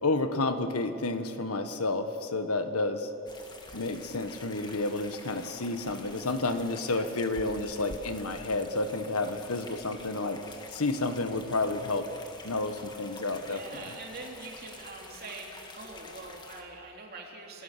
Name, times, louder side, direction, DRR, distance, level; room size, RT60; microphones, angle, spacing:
voice 1, 0.0-3.1 3.7-10.4 10.7-12.1 12.4-13.6, left 2 dB, 80° left, 8 dB, 1.5 m, -30 dB
sound 1, 3.3-16.6, left 2 dB, 20° left, 1.8 m, -48 dB
voice 2, 13.5-17.6, right 3 dB, 45° right, 0 dB, 3.3 m, -44 dB
27.5 x 19.0 x 6.8 m, 2.8 s
head